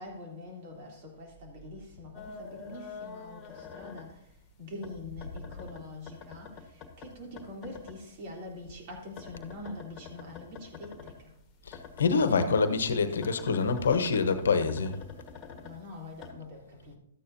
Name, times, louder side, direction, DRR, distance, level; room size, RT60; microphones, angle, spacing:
voice 1, 0.0-4.3 4.6-11.3 15.6-17.0, left 2 dB, 50° right, 3.4 m, -44 dB
sound 1, 2.1-4.5 4.8-8.0 8.3-11.2 11.7-16.3, left 6 dB, 30° left, 1.5 m, -46 dB
voice 2, 11.7-15.0, left 5 dB, 80° left, 1.1 m, -26 dB
13.0 x 9.0 x 2.8 m
hypercardioid pair, 125°, 0 cm